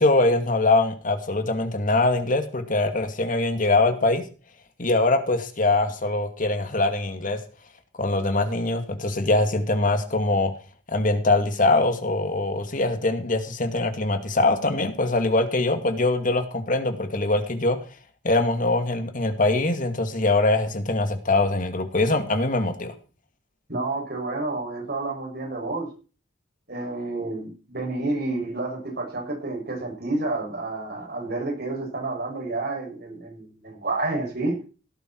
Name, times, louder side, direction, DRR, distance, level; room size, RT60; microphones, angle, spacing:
voice 1, 0.0-4.2 4.8-7.4 8.0-10.5 10.9-17.8 18.2-22.9, left 2 dB, 45° left, 8 dB, 2.3 m, -23 dB
voice 2, 23.7-25.9 26.7-34.6, right 2 dB, 55° right, 1 dB, 7.3 m, -29 dB
17.5 x 10.5 x 4.6 m, 0.36 s
head